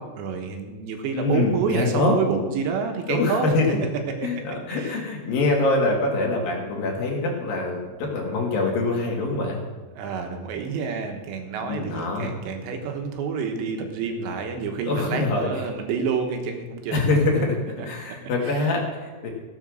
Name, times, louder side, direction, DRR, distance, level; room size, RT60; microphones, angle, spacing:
voice 1, 0.0-3.5 4.2-4.3 4.7-4.9 9.9-17.1 17.8-17.9 18.4-18.7, right 5 dB, 85° right, 4 dB, 3.5 m, -28 dB
voice 2, 1.1-2.1 3.1-3.7 4.2-9.6 11.6-12.3 14.8-15.5 16.9-17.5 17.8-19.3, left 2 dB, 60° left, -1 dB, 3.5 m, -24 dB
15.0 x 7.9 x 6.4 m, 1.3 s
omnidirectional pair, 5.0 m